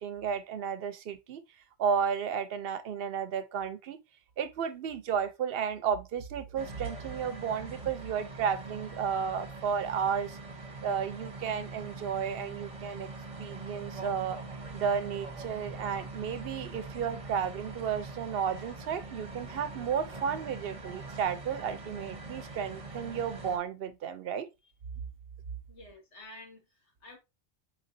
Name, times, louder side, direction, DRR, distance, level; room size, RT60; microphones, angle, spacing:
voice 1, 0.0-1.4 1.8-4.0 4.4-10.4 10.8-13.1 13.4-14.4 14.7-24.5, right 7 dB, 60° right, 0.8 m, -33 dB
sound 1, 6.6-23.6, right 3 dB, 30° right, 0.9 m, -43 dB
voice 2, 25.7-27.2, left 2 dB, 75° left, 1.9 m, -51 dB
4.5 x 4.0 x 2.6 m
omnidirectional pair, 1.2 m